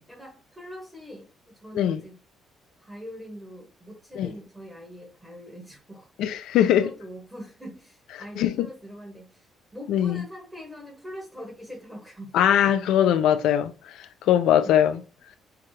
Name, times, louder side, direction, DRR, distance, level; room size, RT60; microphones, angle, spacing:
voice 1, 0.0-2.1 2.8-6.1 6.7-12.9 14.6-14.7, equal, 5° right, 1.3 m, -43 dB
voice 2, 6.2-6.9 8.4-8.7 9.9-10.2 12.3-15.0, left 10 dB, 85° left, 0.4 m, -21 dB
5.9 x 2.4 x 3.3 m
cardioid pair, 145°, 0 cm